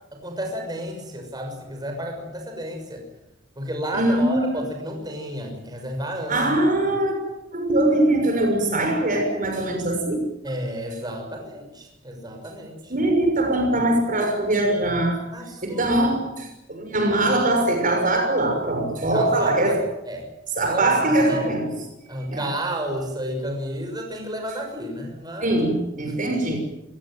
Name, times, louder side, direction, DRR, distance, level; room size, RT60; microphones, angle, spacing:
voice 1, 0.1-3.0 3.6-6.6 10.4-12.9 15.3-15.9 19.1-19.8 20.1-20.3 20.6-21.5 22.1-25.6 26.1-26.2, right 1 dB, 20° right, 3 dB, 6.5 m, -31 dB
voice 2, 3.9-4.6 6.3-7.2 7.5-10.3 12.9-15.2 15.6-19.8 20.6-21.7 22.3-22.4 25.4-26.6, right 1 dB, 45° right, 4 dB, 6.1 m, -22 dB
28.0 x 18.0 x 9.3 m, 0.87 s
head